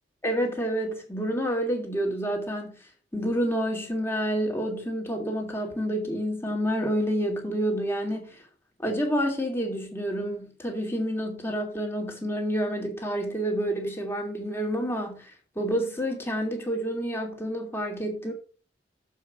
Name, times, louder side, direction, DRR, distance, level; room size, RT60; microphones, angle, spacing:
voice 1, 0.2-2.8 3.1-8.4 8.8-18.3, equal, 15° left, 2.5 m, -29 dB
7.2 x 5.8 x 6.1 m
head